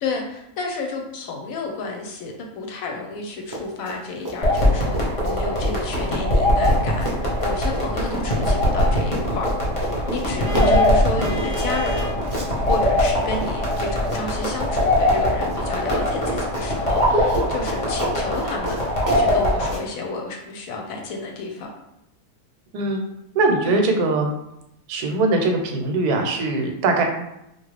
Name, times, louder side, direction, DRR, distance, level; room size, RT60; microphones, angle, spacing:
voice 1, 0.0-9.5 10.1-12.1 12.7-21.7 23.6-23.8, left 3 dB, 70° left, 1 dB, 0.9 m, -31 dB
Run, 3.4-4.0 4.2-15.6 15.9-19.8, right 1 dB, 25° right, 0.4 m, -32 dB
sound 1, 4.4-19.7, left 1 dB, 35° left, 0.7 m, -22 dB
Vehicle horn car horn honking, 10.4-12.2, left 1 dB, 50° right, 0.7 m, -33 dB
voice 2, 23.3-24.3 24.9-27.0, right 3 dB, 80° right, 3 dB, 1.1 m, -21 dB
2.9 x 2.4 x 3.1 m, 0.84 s
omnidirectional pair, 1.6 m